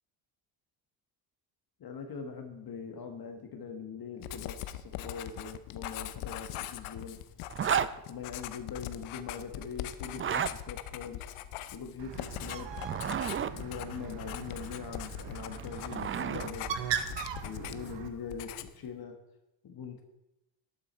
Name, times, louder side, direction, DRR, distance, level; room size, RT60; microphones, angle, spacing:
voice 1, 1.8-7.2 8.1-11.4 11.7-12.7 13.5-16.8 17.4-19.2 19.6-20.0, left 6 dB, 45° left, 5 dB, 1.5 m, -42 dB
Writing, 4.2-18.0 18.3-18.9, left 13 dB, 80° left, 0.8 m, -42 dB
Zipper (clothing), 7.5-7.9 10.1-10.5 12.7-13.5 15.4-16.5, right 8 dB, 25° right, 0.4 m, -31 dB
Bird, 12.0-18.1, right 8 dB, 60° right, 1.2 m, -39 dB
12.5 x 8.8 x 4.3 m, 0.93 s
supercardioid pair, 80°, 49 cm